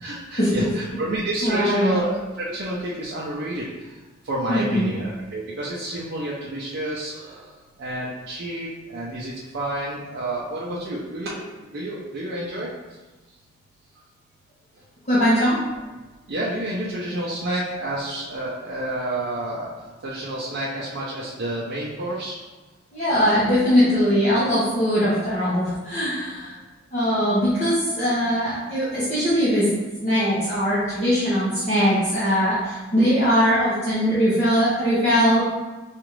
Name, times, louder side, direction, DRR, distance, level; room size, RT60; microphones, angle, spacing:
voice 1, 0.0-3.6 4.2-7.4 7.8-11.4 11.7-12.7 16.3-19.7 20.0-22.3, right 1 dB, 60° right, -6 dB, 0.6 m, -29 dB
voice 2, 1.4-2.0 4.5-4.9 15.1-15.6 22.9-26.5 26.9-29.7 30.0-35.4, equal, 40° left, -12 dB, 1.0 m, -21 dB
4.9 x 2.4 x 3.0 m, 1.2 s
head